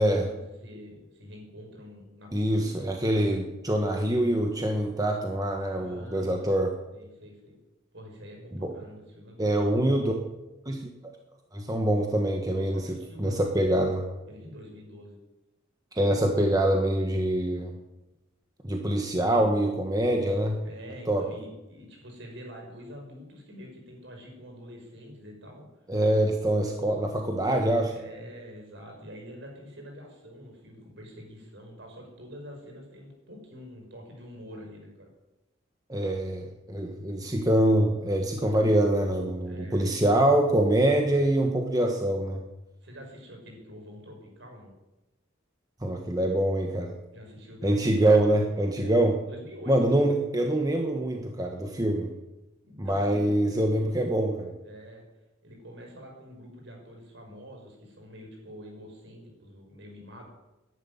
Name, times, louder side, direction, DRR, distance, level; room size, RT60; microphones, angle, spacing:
voice 1, 0.0-3.0 5.7-6.6 6.9-7.6 7.9-9.6 12.7-13.4 14.3-15.2 20.6-25.7 27.9-35.1 37.2-37.4 39.5-39.9 42.8-44.7 47.1-47.8 48.8-49.7 52.6-53.4 54.6-55.0 55.4-60.3, equal, 60° right, 1 dB, 5.6 m, -46 dB
voice 2, 2.3-6.7 8.5-8.8 9.4-10.2 10.6-10.9 11.5-14.0 15.9-17.8 18.6-20.6 21.1-21.2 25.9-27.9 35.9-42.4 45.8-46.9 47.6-49.2 49.7-52.1 52.8-54.5, right 1 dB, 20° right, 3 dB, 1.3 m, -25 dB
11.0 x 11.0 x 9.9 m, 0.98 s
head